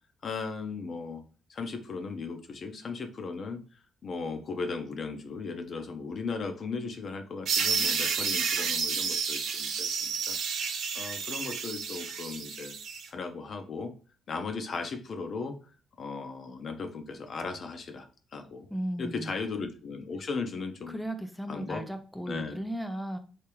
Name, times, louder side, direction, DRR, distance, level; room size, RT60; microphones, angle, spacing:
voice 1, 0.2-1.2 1.5-3.6 4.0-10.4 10.9-12.7 13.1-13.9 14.3-15.5 16.0-18.7 19.0-21.0 21.5-21.8 22.3-22.6, left 4 dB, 50° left, 6 dB, 0.6 m, -37 dB
sound 1, 7.5-13.1, right 6 dB, 75° right, 0.5 m, -30 dB
voice 2, 18.7-19.3 20.9-23.2, right 1 dB, ahead, 7 dB, 0.4 m, -35 dB
3.4 x 2.8 x 3.0 m, 0.37 s
cardioid pair, 90°, 0 cm